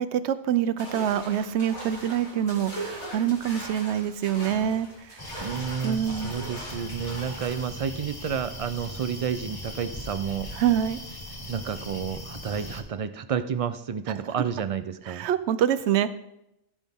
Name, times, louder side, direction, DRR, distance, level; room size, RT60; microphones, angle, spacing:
voice 1, 0.0-4.9 5.8-6.4 10.6-11.0 15.2-16.1, right 9 dB, 85° right, 13 dB, 0.9 m, -25 dB
sound 1, 0.8-7.7, right 1 dB, 85° left, 2.9 m, -40 dB
sound 2, 5.2-12.8, left 1 dB, 20° left, 1.0 m, -39 dB
voice 2, 5.4-10.5 11.5-15.3, right 7 dB, 50° right, 12 dB, 0.4 m, -30 dB
16.0 x 6.0 x 3.6 m, 0.83 s
omnidirectional pair, 1.1 m